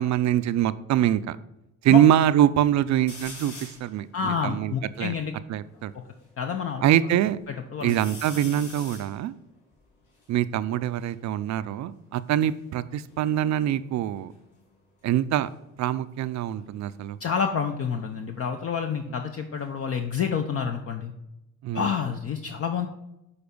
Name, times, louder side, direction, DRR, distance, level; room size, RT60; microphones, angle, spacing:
voice 1, 0.0-1.4 1.8-5.2 5.5-5.9 6.8-7.4 7.8-9.3 10.3-14.3 15.0-15.5 15.8-17.2 21.6-21.9, right 11 dB, 65° right, 15 dB, 0.5 m, -24 dB
sound 1, 3.1-3.9 4.5-4.6 4.7-6.3 6.8-7.4 7.8-11.2 12.1-14.0 14.3-14.8 16.3-19.0 19.3-20.1, left 3 dB, 75° left, 2.7 m, -47 dB
voice 2, 4.1-5.3 6.4-6.8 7.5-7.9 17.2-21.1 21.7-22.9, left 6 dB, 50° left, 5 dB, 0.7 m, -28 dB
6.9 x 4.3 x 5.3 m, 0.89 s
cardioid pair, 90°, 30 cm